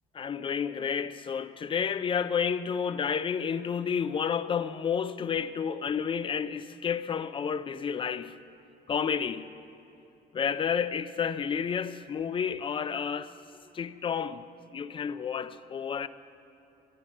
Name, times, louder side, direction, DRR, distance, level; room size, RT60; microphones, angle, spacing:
voice 1, 0.1-8.4 8.9-9.5 10.3-13.3 13.7-14.4 14.7-16.1, left 7 dB, 30° left, 0.4 m, -30 dB
13.0 x 11.0 x 5.4 m
cardioid pair, 110°, 17 cm